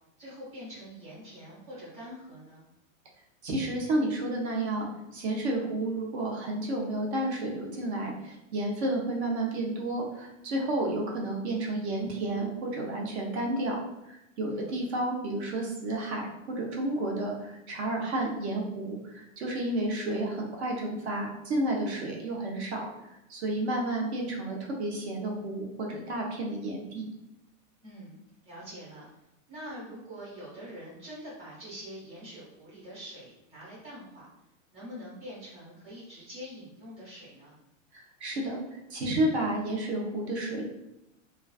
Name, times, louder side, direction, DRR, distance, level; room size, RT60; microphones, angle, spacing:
voice 1, 0.2-2.7 14.5-14.8 27.8-28.2 28.4-29.0 29.5-34.3 34.7-37.6, equal, 15° right, -8 dB, 1.0 m, -44 dB
voice 2, 3.4-13.8 14.1-22.9 23.3-27.1 37.9-38.6 38.9-40.7, right 1 dB, 55° right, -1 dB, 0.7 m, -31 dB
2.3 x 2.3 x 2.3 m, 0.87 s
supercardioid pair, 165°, 40 cm